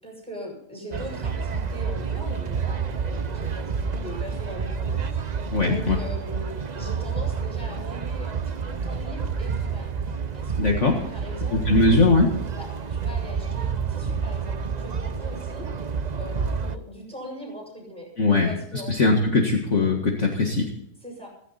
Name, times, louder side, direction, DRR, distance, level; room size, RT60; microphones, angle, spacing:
voice 1, 0.0-9.9 10.3-12.1 12.5-15.7 16.2-19.0 21.0-21.3, equal, 5° left, -1 dB, 7.4 m, -40 dB
sound 1, 0.9-16.8, right 6 dB, 40° right, 0.7 m, -29 dB
voice 2, 5.5-6.0 10.6-11.0 11.5-12.3 18.2-18.5 18.9-20.7, left 3 dB, 50° left, 1 dB, 2.1 m, -20 dB
16.0 x 15.5 x 4.3 m, 0.73 s
omnidirectional pair, 1.7 m